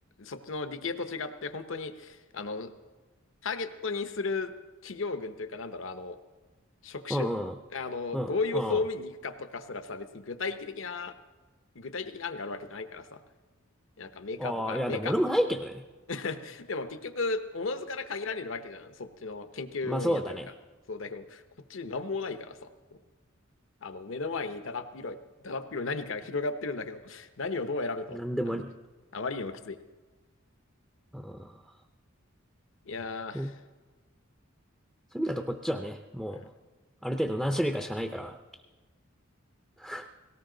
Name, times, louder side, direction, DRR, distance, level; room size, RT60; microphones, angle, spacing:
voice 1, 0.2-2.7 3.4-4.5 4.8-6.2 6.8-7.3 7.7-11.2 11.7-13.2 14.0-15.1 16.1-20.4 20.9-21.4 21.7-23.0 23.8-25.2 25.4-28.2 28.5-28.6 29.1-29.8 32.9-33.6 36.3-36.5, left 3 dB, 65° left, 10 dB, 0.9 m, -35 dB
voice 2, 7.1-7.6 8.1-8.8 14.4-15.8 19.8-20.5 28.1-28.7 31.1-31.6 33.3-33.5 35.1-36.4 37.0-38.4 39.8-40.1, equal, 5° right, 5 dB, 0.6 m, -30 dB
18.5 x 17.5 x 3.9 m, 1.3 s
head